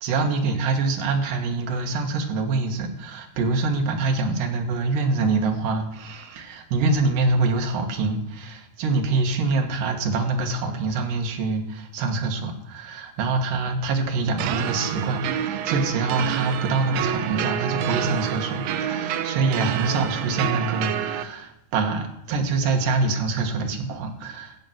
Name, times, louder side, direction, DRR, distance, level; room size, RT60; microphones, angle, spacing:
voice 1, 0.0-24.6, right 3 dB, 90° right, 4 dB, 3.1 m, -25 dB
sound 1, 14.4-21.2, right 10 dB, 75° right, 1.6 m, -28 dB
15.0 x 5.6 x 7.6 m, 0.79 s
omnidirectional pair, 3.7 m